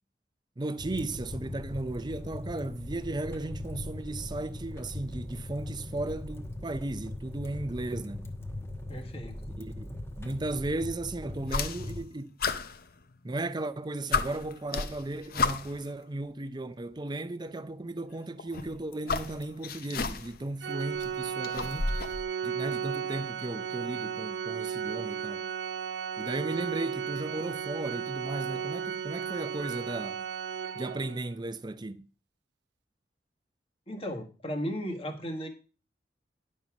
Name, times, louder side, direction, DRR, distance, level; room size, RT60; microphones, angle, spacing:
voice 1, 0.6-8.3 9.6-9.9 10.2-12.4 13.2-21.9 22.4-25.5 26.2-30.2 30.8-32.0, right 2 dB, 25° right, 0.6 m, -35 dB
sound 1, 0.8-12.0, left 1 dB, 15° left, 1.1 m, -40 dB
voice 2, 8.9-9.4 33.9-35.5, equal, 35° left, 1.6 m, -35 dB
sound 2, 11.4-12.1 12.4-13.5 13.8-13.9 14.1-15.9 16.9-17.0 18.4-20.5 20.8-22.2, left 4 dB, 55° left, 0.7 m, -32 dB
Organ, 20.6-31.3, right 7 dB, 75° right, 0.5 m, -35 dB
11.0 x 5.4 x 5.9 m
head